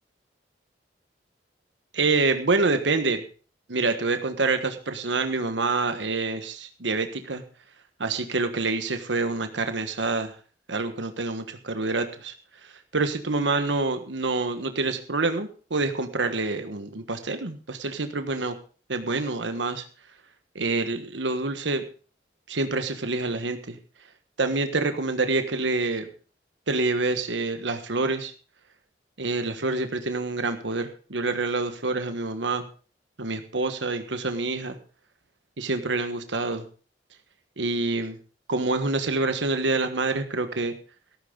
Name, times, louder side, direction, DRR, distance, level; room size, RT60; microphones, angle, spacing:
voice 1, 1.9-3.2 3.7-7.4 8.0-10.3 10.7-12.3 12.6-18.5 18.9-19.8 20.5-21.8 22.5-23.8 24.4-26.1 26.7-28.3 29.2-32.6 33.2-34.8 35.6-36.6 37.6-38.2 38.5-40.7, right 3 dB, 85° right, 8 dB, 1.4 m, -27 dB
14.0 x 13.5 x 3.9 m, 0.38 s
head